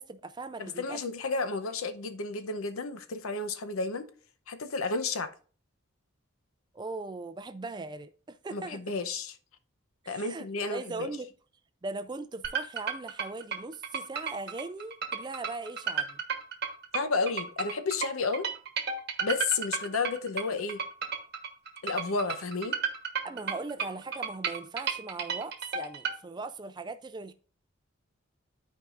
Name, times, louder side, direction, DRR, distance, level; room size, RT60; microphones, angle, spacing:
voice 1, 0.0-1.0 6.7-8.8 10.0-11.3 11.8-16.2 23.2-27.3, right 3 dB, 20° right, 0.3 m, -39 dB
voice 2, 0.6-4.1 4.5-5.3 8.5-9.4 10.1-11.1 16.9-18.5 19.2-20.8 21.8-22.8, left 4 dB, 85° left, 0.7 m, -32 dB
sound 1, 12.4-26.2, right 6 dB, 50° right, 1.0 m, -33 dB
12.5 x 4.7 x 2.5 m
head